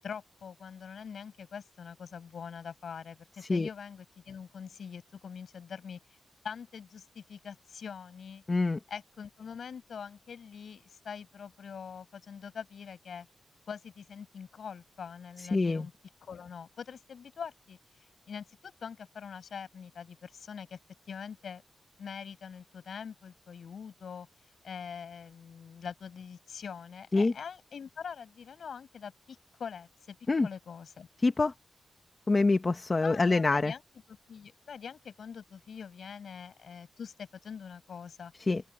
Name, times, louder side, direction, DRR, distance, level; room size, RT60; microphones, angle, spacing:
voice 1, 0.0-6.0 6.4-8.4 8.9-13.3 13.7-15.9 16.2-17.8 18.3-20.8 21.1-21.6 22.0-24.3 24.6-30.2 30.4-31.1 32.9-33.8 34.1-38.3, left 6 dB, 70° left, 7.8 m, -44 dB
voice 2, 8.5-8.8 15.4-15.8 27.1-27.3 30.3-30.5 31.2-31.5 32.3-33.7 38.4-38.6, left 3 dB, 30° left, 1.2 m, -25 dB
open air
wide cardioid pair, 135°, 0 cm